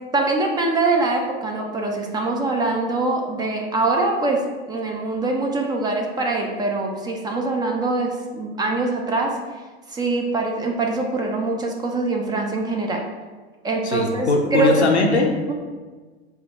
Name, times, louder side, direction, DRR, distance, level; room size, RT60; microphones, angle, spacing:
voice 1, 0.1-9.4 9.9-13.0 13.6-14.9, right 3 dB, 15° right, 1 dB, 0.3 m, -23 dB
voice 2, 13.8-15.5, left 3 dB, 90° left, 1 dB, 0.8 m, -20 dB
4.8 x 2.2 x 4.0 m, 1.4 s
hypercardioid pair, 95°, 32 cm